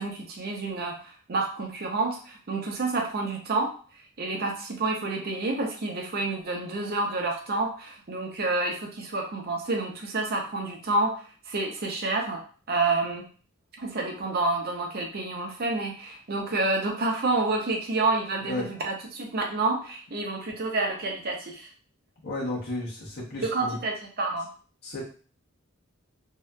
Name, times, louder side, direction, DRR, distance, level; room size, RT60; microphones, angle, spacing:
voice 1, 0.0-3.7 4.2-12.4 12.7-13.3 13.8-21.7 23.4-24.5, right 2 dB, 50° right, 1 dB, 0.6 m, -29 dB
voice 2, 22.2-23.8 24.8-25.0, left 1 dB, 55° left, -4 dB, 1.0 m, -33 dB
2.7 x 2.4 x 2.2 m, 0.40 s
head